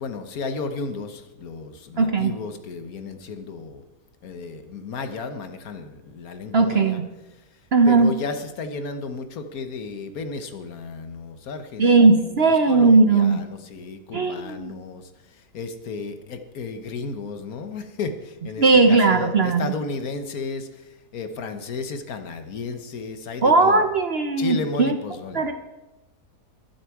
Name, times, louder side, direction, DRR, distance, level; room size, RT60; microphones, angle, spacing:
voice 1, 0.0-3.8 4.2-7.0 7.3-7.6 7.8-23.8 24.4-25.5, left 4 dB, 65° left, 8 dB, 1.5 m, -33 dB
voice 2, 2.0-2.3 6.5-7.0 7.7-8.1 11.8-13.4 14.1-14.7 18.6-19.7 23.4-25.0 25.3-25.5, right 3 dB, 50° right, 7 dB, 0.8 m, -18 dB
21.5 x 7.3 x 4.7 m, 1.0 s
omnidirectional pair, 1.7 m